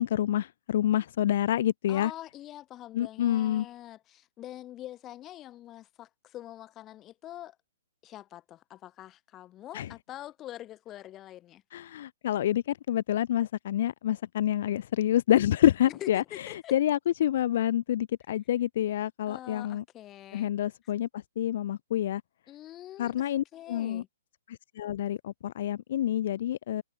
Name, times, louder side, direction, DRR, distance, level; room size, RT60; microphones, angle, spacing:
voice 1, 0.0-2.1 2.9-3.7 9.7-9.9 11.7-19.8 20.3-22.2 23.0-24.0 24.5-26.8, left 12 dB, 55° left, 0.5 m, -27 dB
voice 2, 1.9-7.6 8.0-11.6 15.9-16.7 19.3-20.5 22.5-24.1, left 13 dB, 20° left, 1.4 m, -45 dB
hypercardioid pair, 145°, 0 cm